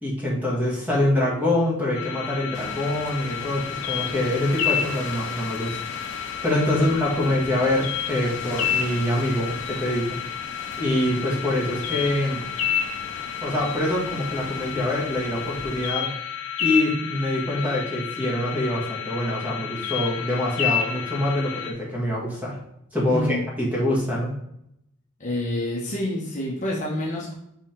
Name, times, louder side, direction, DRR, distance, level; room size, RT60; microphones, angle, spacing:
voice 1, 0.0-5.8 6.1-10.2 10.8-12.4 13.4-16.1 16.6-22.6 22.9-24.3, left 1 dB, 5° right, -4 dB, 1.8 m, -25 dB
sound 1, 1.9-21.7, left 8 dB, 80° left, 1.0 m, -30 dB
sound 2, 2.5-15.9, left 3 dB, 55° left, 0.7 m, -39 dB
voice 2, 23.1-23.4 25.2-27.3, left 1 dB, 35° left, -3 dB, 1.1 m, -27 dB
5.5 x 3.8 x 4.5 m, 0.77 s
head